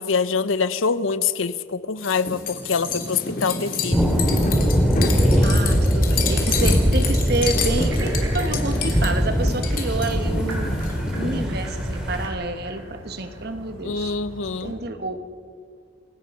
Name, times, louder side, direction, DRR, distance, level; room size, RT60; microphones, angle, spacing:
voice 1, 0.0-4.1 13.8-14.7, left 5 dB, 80° left, 15 dB, 0.8 m, -25 dB
sound 1, 2.0-11.4, left 3 dB, 45° left, 2.9 m, -28 dB
sound 2, 3.9-12.3, equal, 5° right, 2.8 m, -21 dB
voice 2, 5.3-10.8 11.1-14.2 14.6-15.3, right 2 dB, 50° right, 9 dB, 1.2 m, -29 dB
stones on thin ice, 7.9-14.7, right 1 dB, 85° right, 5.1 m, -39 dB
29.0 x 18.0 x 5.4 m, 2.2 s
head